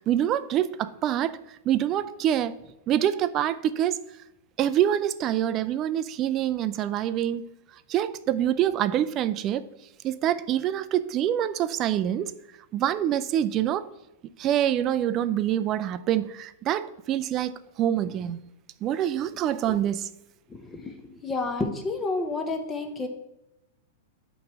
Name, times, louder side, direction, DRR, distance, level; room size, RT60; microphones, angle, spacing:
voice 1, 0.1-1.4 1.7-2.6 2.9-4.0 4.6-7.5 7.9-9.6 10.0-12.3 12.7-13.9 14.4-18.4 18.8-20.1, right 11 dB, 35° right, 13 dB, 0.4 m, -25 dB
voice 2, 20.5-23.1, left 3 dB, 15° left, 5 dB, 0.8 m, -30 dB
8.6 x 3.1 x 5.9 m, 0.93 s
hypercardioid pair, 125°, 0 cm